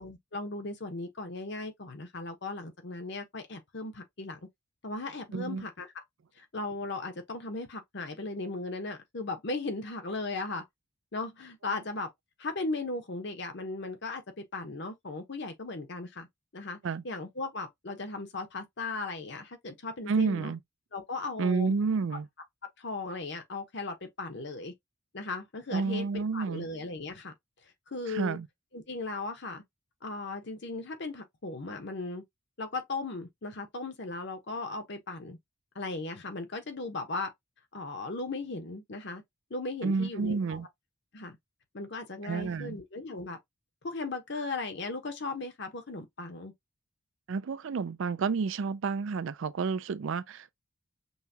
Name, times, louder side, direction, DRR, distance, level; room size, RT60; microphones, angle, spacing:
voice 1, 0.0-4.4 4.8-6.0 6.4-10.6 11.1-12.1 12.4-16.3 16.5-16.8 17.0-20.5 20.9-21.8 22.8-24.7 25.1-27.3 27.9-28.4 28.7-29.6 30.0-32.2 32.6-35.4 35.7-37.3 37.7-39.2 39.5-40.6 41.1-41.4 41.7-43.4 43.8-46.5, left 3 dB, 55° left, 0.9 m, -37 dB
voice 2, 5.3-5.6 16.8-17.0 20.1-20.6 21.4-22.3 25.7-26.7 28.1-28.5 39.8-40.7 42.2-42.7 47.3-50.5, right 5 dB, 65° right, 0.4 m, -30 dB
5.5 x 2.3 x 2.7 m
head